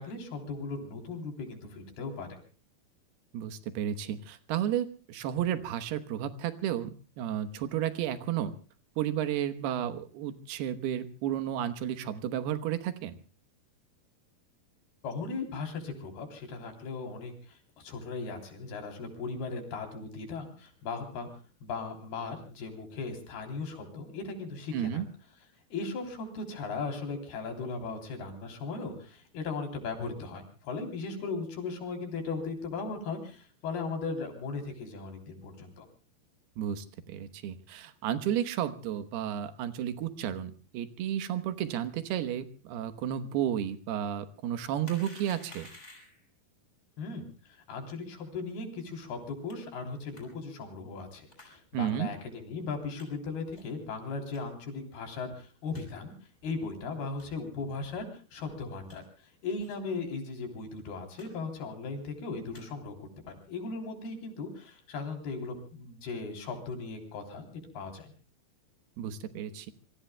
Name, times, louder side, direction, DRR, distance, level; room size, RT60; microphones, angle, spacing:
voice 1, 0.0-2.4 15.0-21.3 21.6-25.0 25.7-35.9 47.0-56.1 56.4-68.1, left 4 dB, 75° left, 4 dB, 5.4 m, -38 dB
voice 2, 3.3-8.5 9.0-13.2 24.7-25.1 36.6-45.7 51.7-52.1 69.0-69.7, right 10 dB, 85° right, 11 dB, 3.2 m, -32 dB
sound 1, 44.8-46.3 49.5-49.6 50.1-50.2 51.3-51.5 52.1-52.2 52.9-53.1 53.5-53.8 54.3-54.4 55.0-55.1 55.3-55.4 55.7-55.8 56.4-56.5 57.1-57.3 57.8-58.0 58.4-59.0 59.6-59.8 60.1-60.2 60.4-60.6 61.1-61.3 61.5-61.9 62.3-62.6 63.2-63.5, left 2 dB, 15° left, 5.6 m, -53 dB
27.0 x 23.5 x 2.3 m, 0.37 s
omnidirectional pair, 4.4 m